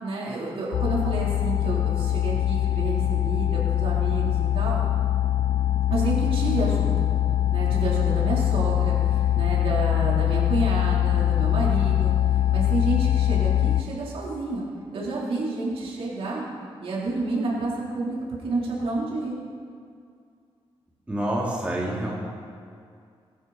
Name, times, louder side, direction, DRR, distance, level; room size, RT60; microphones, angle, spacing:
voice 1, 0.0-4.8 5.9-7.1 7.5-12.1 12.5-14.7 14.9-16.5 16.8-18.2 18.4-19.4, right 2 dB, 70° right, -5 dB, 4.3 m, -29 dB
sound 1, 0.7-13.8, left 12 dB, 70° left, 0.5 m, -23 dB
voice 2, 21.1-22.1, right 1 dB, 15° right, -5 dB, 3.0 m, -27 dB
22.0 x 12.0 x 4.5 m, 2.3 s
wide cardioid pair, 150°, 10 cm